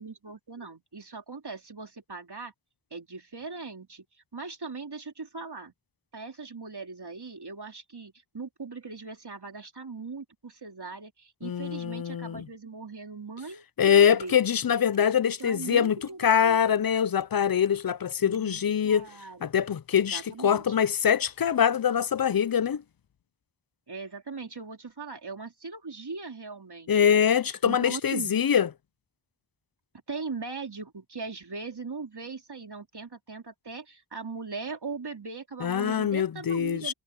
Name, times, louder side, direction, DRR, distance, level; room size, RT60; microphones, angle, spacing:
voice 1, 0.0-2.5 2.9-4.0 4.3-5.7 6.1-14.4 15.2-16.6 18.2-19.4 19.9-20.8 23.9-27.2 27.5-28.3 30.1-36.9, right 4 dB, 60° right, 3.4 m, -40 dB
voice 2, 11.4-12.4 13.8-16.0 16.2-19.1 19.4-22.8 26.9-28.7 35.6-36.9, left 8 dB, 55° left, 0.6 m, -24 dB
sound 1, 13.8-18.8, right 2 dB, 35° right, 6.2 m, -56 dB
wide cardioid pair, 65°, 44 cm